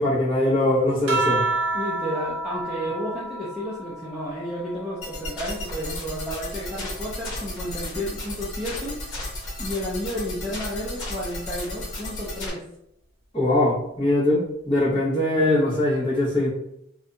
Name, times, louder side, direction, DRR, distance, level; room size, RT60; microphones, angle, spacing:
voice 1, 0.0-1.5 13.3-16.5, left 1 dB, 25° left, -8 dB, 1.1 m, -22 dB
sound 1, 1.1-5.9 6.3-8.1 9.3-9.8, right 2 dB, 60° right, 0.7 m, -31 dB
voice 2, 1.7-9.0 9.6-12.6, equal, 5° right, -9 dB, 0.4 m, -32 dB
sound 2, 5.0-12.5, left 1 dB, 60° left, 1.0 m, -34 dB
2.7 x 2.2 x 2.5 m, 0.77 s
head